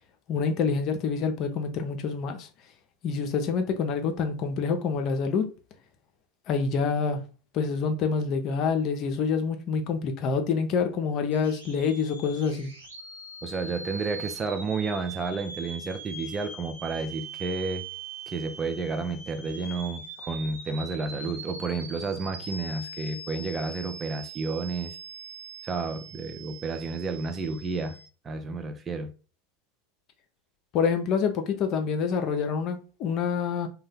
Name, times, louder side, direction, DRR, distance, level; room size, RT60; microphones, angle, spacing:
voice 1, 0.3-2.5 3.0-5.5 6.5-7.2 7.5-12.7 30.7-33.7, left 5 dB, 45° left, 0.6 m, -27 dB
sound 1, 11.3-28.1, right 3 dB, 90° right, 0.9 m, -42 dB
voice 2, 13.4-17.8 18.3-25.0 25.6-28.0 28.2-29.1, right 4 dB, 25° right, 0.6 m, -31 dB
2.6 x 2.3 x 3.4 m
hypercardioid pair, 90°, 0 cm